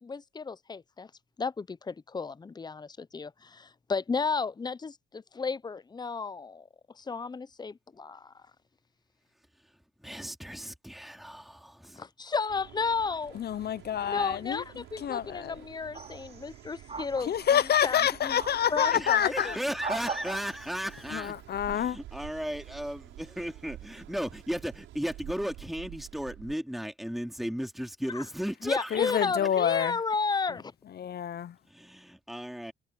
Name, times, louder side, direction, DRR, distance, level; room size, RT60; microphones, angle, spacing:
voice 1, 0.0-1.1 1.4-6.7 6.9-8.5 12.0-13.4 14.0-18.4 18.7-19.5 28.1-28.3 28.6-30.7, left 4 dB, 20° left, 0.6 m, -33 dB
voice 2, 10.0-12.1 18.9-21.3 21.7-29.3 31.7-32.7, equal, ahead, 3.0 m, -35 dB
Mechanical fan, 12.5-26.5, right 14 dB, 85° right, 7.4 m, -49 dB
voice 3, 13.3-14.6 15.0-15.6 17.3-19.6 21.1-22.0 28.9-30.0 31.0-31.5, left 9 dB, 55° left, 0.8 m, -27 dB
sound 1, 15.9-16.5 16.9-17.8 18.3-19.0 19.6-20.8, right 4 dB, 30° right, 5.4 m, -39 dB
cardioid pair, 90°, 20 cm